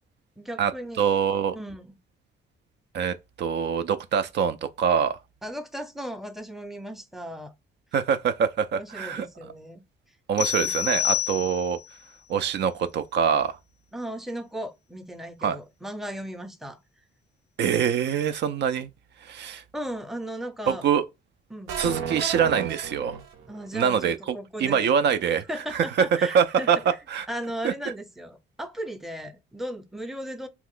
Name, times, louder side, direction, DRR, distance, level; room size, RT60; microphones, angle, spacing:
voice 1, 0.4-1.1 1.5-1.9 5.4-7.5 8.7-9.8 10.6-10.7 13.9-16.8 19.7-20.9 21.5-21.8 23.5-24.9 25.5-26.7 27.3-30.5, equal, ahead, 0.6 m, -36 dB
voice 2, 1.0-1.6 2.9-5.2 7.9-9.3 10.3-11.8 12.3-13.6 15.4-15.6 17.6-18.9 19.2-19.6 20.7-21.0 21.8-23.2 23.7-25.4 25.7-26.8 27.1-27.3 27.6-27.7, right 7 dB, 60° right, 0.4 m, -24 dB
sound 1, 10.4-11.9, left 11 dB, 60° left, 0.4 m, -27 dB
sound 2, 21.7-23.7, right 7 dB, 90° right, 0.7 m, -32 dB
2.9 x 2.4 x 3.7 m
cardioid pair, 90°, 20 cm